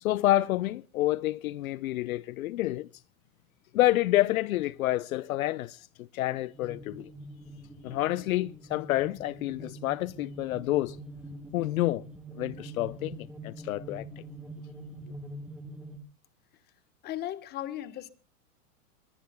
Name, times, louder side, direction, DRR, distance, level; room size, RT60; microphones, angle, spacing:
voice 1, 0.0-2.9 3.7-7.1 7.8-11.0 11.5-12.0 12.4-14.2, left 16 dB, 65° left, 0.6 m, -28 dB
sound 1, 6.5-16.0, right 1 dB, ahead, 1.3 m, -44 dB
voice 2, 17.0-18.1, left 13 dB, 20° left, 1.1 m, -36 dB
22.0 x 20.5 x 2.2 m
supercardioid pair, 150°, 45 cm